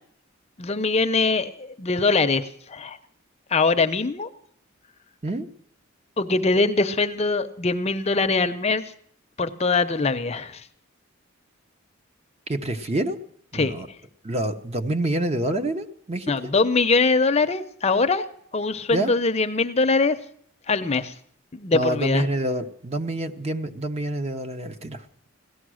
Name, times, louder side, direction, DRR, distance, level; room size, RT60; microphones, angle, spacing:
voice 1, 0.6-3.0 3.5-4.3 6.2-8.8 9.4-10.6 13.5-13.7 16.3-18.2 18.5-20.2 20.7-21.1 21.5-22.2, left 3 dB, 30° left, 9 dB, 0.6 m, -22 dB
voice 2, 12.5-13.2 13.5-13.9 14.2-16.5 18.9-19.1 21.7-25.0, right 1 dB, 30° right, 7 dB, 0.9 m, -27 dB
17.5 x 12.5 x 6.3 m, 0.66 s
head